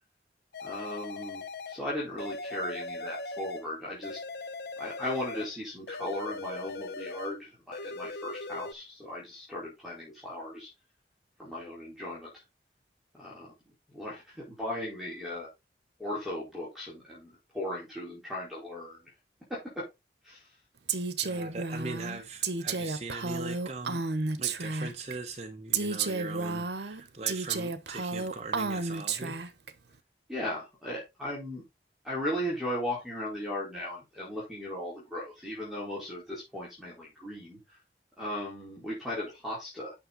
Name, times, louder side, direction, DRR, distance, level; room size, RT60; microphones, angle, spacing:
sound 1, 0.5-1.8 2.2-3.7 4.0-5.5 5.9-7.4 7.7-8.7, left 3 dB, 70° left, 0.8 m, -40 dB
voice 1, 0.6-4.2 4.8-10.7 11.4-12.3 13.2-13.5 13.9-15.5 16.0-19.0 19.7-19.8 20.2-20.4 30.3-31.6 32.0-37.6 38.2-39.9, left 1 dB, ahead, 4.3 m, -37 dB
Female speech woman speaking, 20.9-25.1 25.7-29.7, right 4 dB, 75° right, 1.0 m, -32 dB
voice 2, 21.2-24.0 24.4-29.4, right 3 dB, 35° right, 0.9 m, -40 dB
8.7 x 6.2 x 4.0 m
head